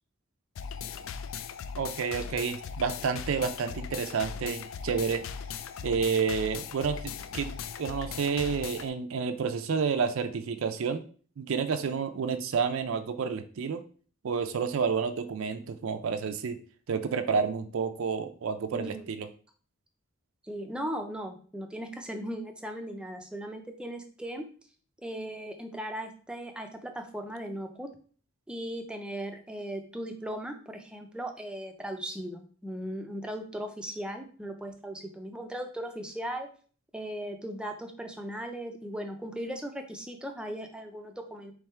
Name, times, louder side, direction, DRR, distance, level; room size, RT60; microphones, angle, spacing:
sound 1, 0.5-8.9, left 7 dB, 70° left, 0.3 m, -39 dB
voice 1, 1.8-5.2 5.8-7.5 7.8-11.0 11.4-13.8 14.2-16.6 16.9-19.3, right 6 dB, 75° right, 9 dB, 0.4 m, -30 dB
voice 2, 18.7-19.1 20.4-24.5 25.0-27.9 28.5-36.5 36.9-41.5, equal, 5° right, 5 dB, 0.5 m, -38 dB
3.5 x 3.2 x 4.3 m, 0.42 s
head